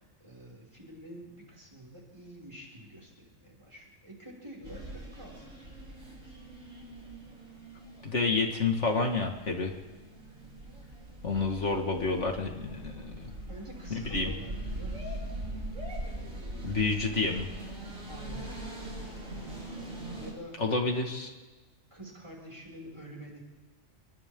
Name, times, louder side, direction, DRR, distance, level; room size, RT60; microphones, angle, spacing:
voice 1, 0.0-5.9 13.5-15.3 18.0-18.6 20.2-20.7 20.9-21.3 21.9-23.4, equal, 20° right, -3 dB, 6.3 m, -48 dB
sound 1, 4.6-20.3, right 1 dB, 85° right, 5.3 m, -41 dB
voice 2, 8.0-9.7 11.2-13.3 13.9-14.3 16.6-17.5 20.6-21.3, left 3 dB, 60° left, 2 dB, 2.2 m, -29 dB
30.0 x 23.0 x 3.8 m, 1.2 s
omnidirectional pair, 1.3 m